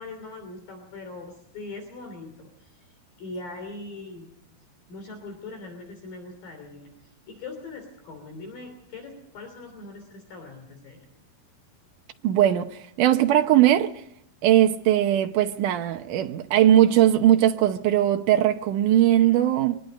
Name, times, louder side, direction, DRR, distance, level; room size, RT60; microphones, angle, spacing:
voice 1, 0.0-4.3 4.9-11.1, left 3 dB, 55° left, 4.7 m, -41 dB
voice 2, 12.2-13.9 14.4-19.8, right 12 dB, 85° right, 1.8 m, -20 dB
24.0 x 21.0 x 5.3 m
omnidirectional pair, 5.0 m